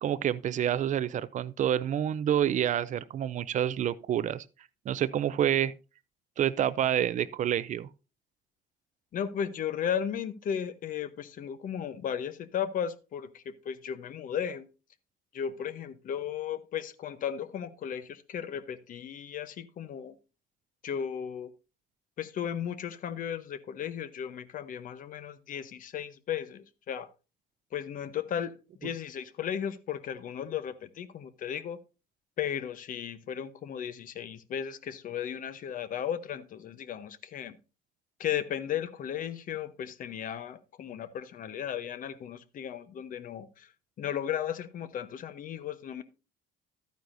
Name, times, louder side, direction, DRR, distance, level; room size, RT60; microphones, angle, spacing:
voice 1, 0.0-4.4 4.9-5.7 6.4-7.9, right 10 dB, 45° right, 0.5 m, -28 dB
voice 2, 9.1-14.7 15.3-20.2 20.8-21.5 22.2-27.1 27.7-31.8 32.4-37.6 38.2-43.7 44.0-46.0, left 9 dB, 55° left, 0.8 m, -35 dB
12.0 x 9.3 x 2.6 m
cardioid pair, 110°, 17 cm